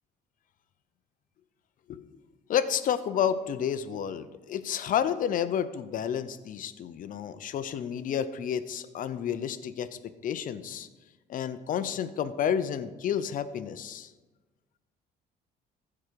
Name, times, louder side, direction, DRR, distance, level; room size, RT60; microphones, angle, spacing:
voice 1, 2.5-10.9 11.3-14.1, left 8 dB, 55° left, 12 dB, 0.7 m, -30 dB
14.5 x 4.9 x 4.6 m, 1.2 s
cardioid pair, 110°, 17 cm